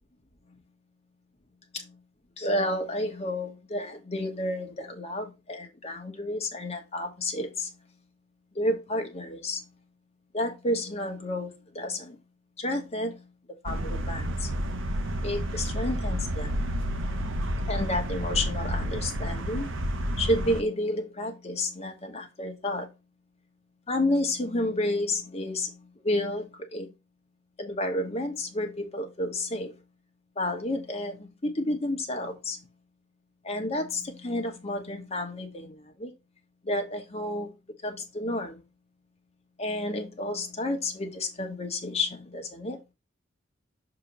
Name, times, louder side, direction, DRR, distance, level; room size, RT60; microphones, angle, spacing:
voice 1, 2.4-7.7 8.5-9.6 10.3-12.2 12.6-13.2 13.6-14.5 15.2-16.6 17.7-19.7 20.2-22.9 23.9-26.9 27.6-29.8 30.4-32.6 33.4-36.1 36.6-37.5 37.8-38.6 39.6-42.8, left 1 dB, 35° left, 1.2 m, -31 dB
sound 1, 13.7-20.6, equal, 90° right, 0.9 m, -30 dB
6.7 x 3.0 x 5.1 m
head